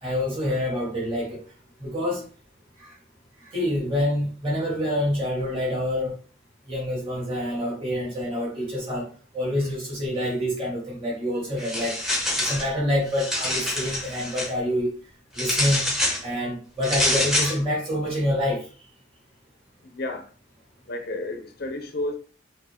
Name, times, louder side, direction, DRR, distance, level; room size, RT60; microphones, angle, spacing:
voice 1, 0.0-1.4 1.8-2.2 2.8-2.9 3.5-6.1 6.7-9.1 9.3-12.0 12.4-14.9 15.3-15.8 16.2-18.6, left 1 dB, 30° right, 2.5 m, -27 dB
sound 1, 11.6-12.7 13.1-14.5 15.4-16.2 16.8-17.6, left 1 dB, ahead, 0.9 m, -26 dB
voice 2, 19.9-20.3 20.9-22.1, left 1 dB, 50° left, 0.6 m, -31 dB
5.0 x 2.8 x 3.6 m
head